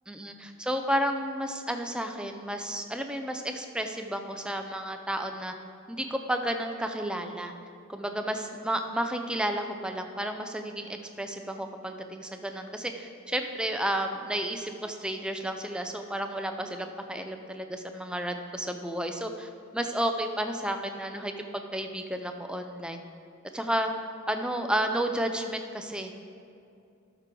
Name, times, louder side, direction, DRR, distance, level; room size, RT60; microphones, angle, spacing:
voice 1, 0.1-5.5 5.9-7.5 7.9-23.0 23.5-23.9 24.3-26.1, right 1 dB, 5° right, 5 dB, 0.5 m, -32 dB
12.5 x 6.0 x 3.8 m, 2.5 s
head